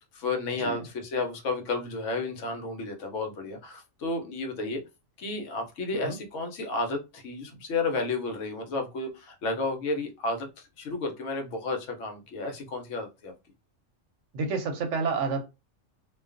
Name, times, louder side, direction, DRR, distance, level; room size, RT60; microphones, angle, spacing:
voice 1, 0.1-4.8 5.2-13.3, left 3 dB, 70° left, 0.9 m, -32 dB
voice 2, 14.3-15.5, right 4 dB, 70° right, 0.8 m, -29 dB
2.3 x 2.2 x 2.4 m
omnidirectional pair, 1.4 m